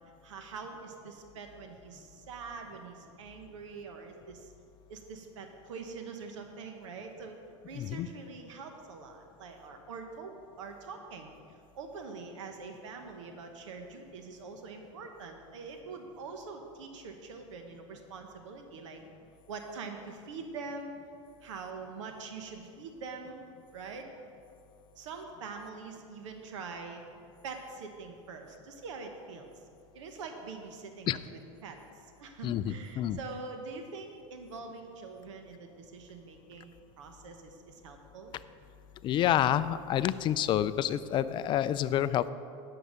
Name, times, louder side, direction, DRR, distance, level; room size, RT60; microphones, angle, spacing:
voice 1, 0.2-4.5 4.9-7.4 7.6-11.3 11.7-19.0 19.5-20.9 21.4-23.4 23.7-24.1 24.9-27.0 27.4-29.6 29.9-38.3, right 4 dB, 80° right, 4 dB, 1.1 m, -44 dB
voice 2, 7.7-8.1 31.1-31.2 32.4-33.2 39.0-42.3, left 11 dB, 30° left, 14 dB, 0.4 m, -28 dB
9.1 x 6.8 x 6.4 m, 2.4 s
hypercardioid pair, 115°, 16 cm